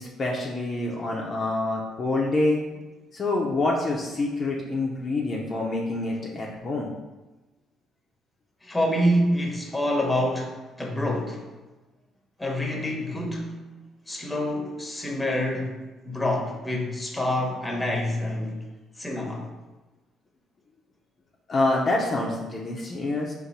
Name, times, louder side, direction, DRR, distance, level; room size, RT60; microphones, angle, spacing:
voice 1, 0.0-2.6 3.1-6.9 21.5-23.3, left 2 dB, 40° left, -3 dB, 0.6 m, -26 dB
voice 2, 8.6-11.4 12.4-13.6 14.1-15.7 16.0-18.6 19.0-19.5, left 1 dB, 10° left, 0 dB, 1.0 m, -27 dB
3.8 x 2.6 x 4.1 m, 1.1 s
cardioid pair, 85°, 0 cm